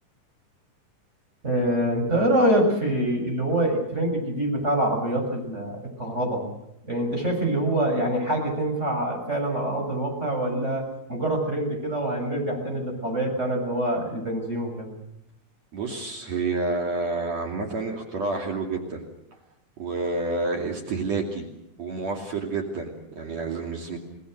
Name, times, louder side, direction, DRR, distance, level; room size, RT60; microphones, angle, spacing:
voice 1, 1.4-6.4 6.8-14.9, right 1 dB, 20° right, 1 dB, 7.2 m, -25 dB
voice 2, 15.7-19.0 19.8-21.5 21.8-24.0, right 3 dB, 55° right, 2 dB, 3.8 m, -29 dB
29.5 x 19.5 x 6.6 m, 0.82 s
omnidirectional pair, 3.7 m